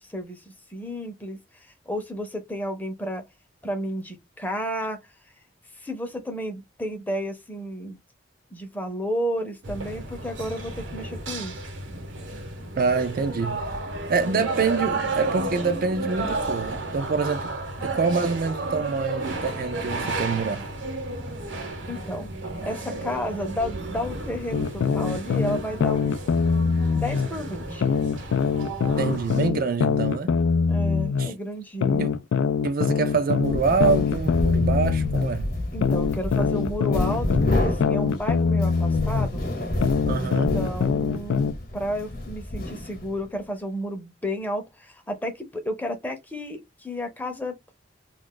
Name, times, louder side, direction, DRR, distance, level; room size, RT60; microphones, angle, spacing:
voice 1, 0.0-3.2 3.6-5.0 5.8-8.0 8.5-11.6 21.9-22.3 22.6-26.2 26.9-27.9 30.7-32.1 35.7-39.5 40.1-47.6, equal, 10° left, 0.6 m, -32 dB
sound 1, 9.6-29.5, right 2 dB, 75° right, 1.0 m, -32 dB
voice 2, 12.8-13.7 14.1-17.5 17.8-20.7 29.0-30.4 31.2-31.3 32.0-32.2 32.6-35.5 40.1-40.6, right 5 dB, 50° right, 0.4 m, -26 dB
sound 2, 24.5-27.3 27.8-31.3 31.8-35.3 35.8-39.3 39.8-41.5, left 5 dB, 85° left, 0.3 m, -23 dB
sound 3, 33.3-43.3, left 1 dB, 50° left, 0.9 m, -29 dB
2.4 x 2.3 x 3.7 m
head